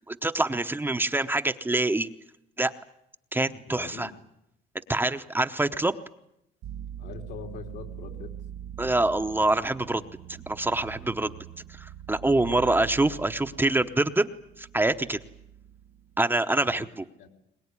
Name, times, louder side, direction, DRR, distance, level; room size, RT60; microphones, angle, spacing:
voice 1, 0.0-2.1 2.6-2.7 3.3-4.1 4.9-6.0 8.8-10.0 10.5-11.4 11.7-14.3 14.6-15.2 16.2-17.0, right 2 dB, 10° right, 8 dB, 0.9 m, -25 dB
voice 2, 3.6-4.2 7.0-8.4 12.2-12.7 16.7-16.9 17.2-17.3, left 6 dB, 80° left, 3 dB, 3.5 m, -43 dB
sound 1, 6.6-16.2, right 10 dB, 65° right, 0.9 m, -43 dB
22.5 x 20.0 x 9.8 m, 0.80 s
cardioid pair, 110°, 17 cm